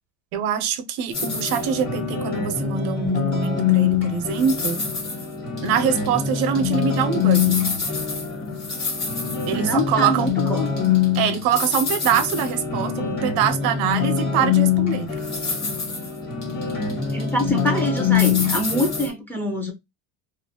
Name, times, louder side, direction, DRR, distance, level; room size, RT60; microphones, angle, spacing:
voice 1, 0.3-4.8 5.6-7.6 9.5-10.3 11.2-15.1, right 8 dB, 75° right, 0.6 m, -24 dB
sound 1, 1.1-19.1, left 7 dB, 30° left, 1.3 m, -24 dB
voice 2, 9.5-10.8 16.9-19.7, equal, 5° left, 0.5 m, -25 dB
2.4 x 2.1 x 2.7 m
cardioid pair, 135°, 37 cm